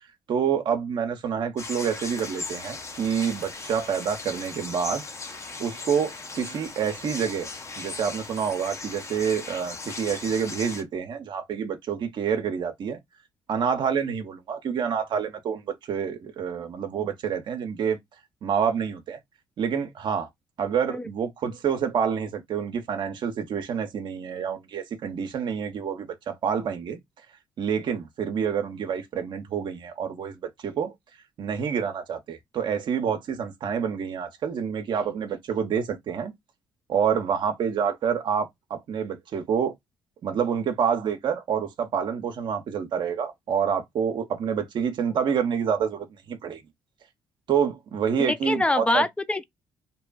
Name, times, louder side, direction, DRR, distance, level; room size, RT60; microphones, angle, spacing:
voice 1, 0.3-5.0 5.6-7.5 7.8-13.0 13.5-18.0 18.4-19.2 19.6-20.3 20.6-27.0 27.6-30.9 31.4-36.3 36.9-39.7 40.2-46.6 47.5-49.1, right 7 dB, 60° right, 0.6 m, -27 dB
sound 1, 1.6-10.8, left 3 dB, 35° left, 0.7 m, -38 dB
voice 2, 48.2-49.4, left 2 dB, 10° left, 0.4 m, -24 dB
2.8 x 2.4 x 2.3 m
supercardioid pair, 70°, 9 cm